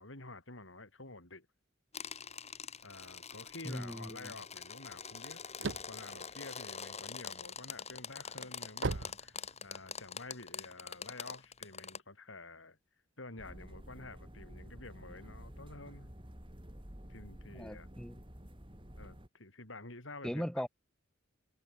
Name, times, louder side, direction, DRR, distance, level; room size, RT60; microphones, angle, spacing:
voice 1, 0.0-1.5 2.8-5.4 5.8-12.8 13.2-16.1 17.1-17.9 19.0-20.4, left 2 dB, 75° left, 6.4 m, -50 dB
sound 1, 1.9-12.0, left 6 dB, 35° left, 5.0 m, -45 dB
voice 2, 3.6-4.3 17.5-18.2 20.2-20.7, equal, 5° left, 2.0 m, -39 dB
sound 2, 5.1-7.3 7.8-10.0, right 3 dB, 65° right, 1.0 m, -39 dB
sound 3, 13.4-19.3, equal, 25° right, 4.7 m, -51 dB
head